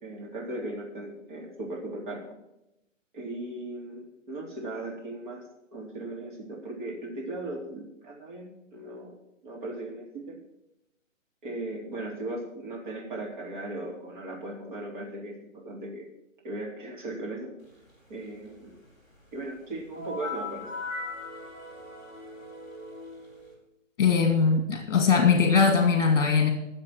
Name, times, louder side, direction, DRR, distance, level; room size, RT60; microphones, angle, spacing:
voice 1, 0.0-2.4 3.1-5.4 5.7-9.1 9.4-10.4 11.4-16.1 16.4-17.5 18.1-18.7 19.3-20.7, right 2 dB, 35° right, -2 dB, 3.5 m, -37 dB
sound 1, 19.9-23.5, left 3 dB, 15° right, 3.5 m, -39 dB
voice 2, 24.0-26.5, left 5 dB, 45° left, 4 dB, 2.1 m, -21 dB
12.5 x 7.3 x 7.6 m, 0.87 s
hypercardioid pair, 155°, 39 cm